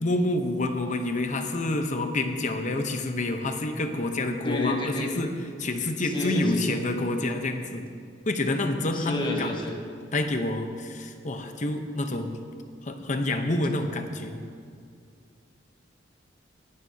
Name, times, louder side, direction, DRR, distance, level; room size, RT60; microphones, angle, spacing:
voice 1, 0.0-5.3 5.6-7.8 8.3-9.5 10.1-12.4 12.8-14.4, left 2 dB, 40° left, 6 dB, 0.8 m, -28 dB
voice 2, 4.4-5.1 6.0-6.8 8.9-9.7, left 2 dB, 25° left, 0 dB, 1.4 m, -30 dB
18.0 x 10.5 x 2.8 m, 2.3 s
head